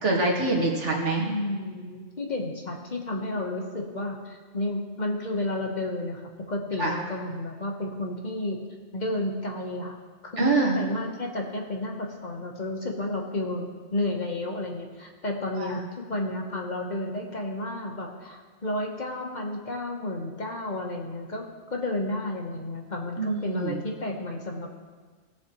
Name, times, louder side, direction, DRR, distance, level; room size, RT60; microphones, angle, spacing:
voice 1, 0.0-1.2 6.8-6.9 10.4-10.8 15.6-15.7 23.2-23.8, right 2 dB, 90° right, -1 dB, 2.0 m, -25 dB
voice 2, 1.2-6.2 6.5-8.6 8.9-9.9 10.2-21.4 21.7-24.8, left 1 dB, 40° left, 1 dB, 1.2 m, -32 dB
18.0 x 7.0 x 3.0 m, 1.5 s
omnidirectional pair, 1.2 m